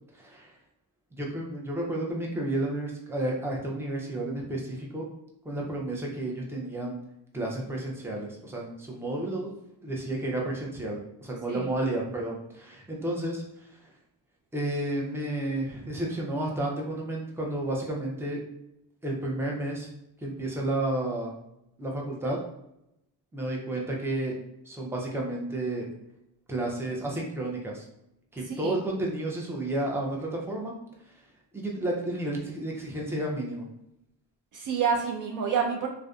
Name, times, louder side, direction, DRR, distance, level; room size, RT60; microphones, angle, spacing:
voice 1, 0.1-0.5 1.1-5.1 5.4-7.0 7.3-9.5 9.8-13.8 14.5-18.4 19.0-19.9 20.2-21.4 21.8-22.4 23.3-24.4 24.6-25.9 26.5-27.8 28.3-30.7 31.5-33.7, right 1 dB, 5° right, -2 dB, 0.6 m, -31 dB
voice 2, 34.5-35.9, right 6 dB, 50° right, 0 dB, 0.5 m, -28 dB
2.4 x 2.2 x 2.4 m, 0.82 s
supercardioid pair, 65°, 42 cm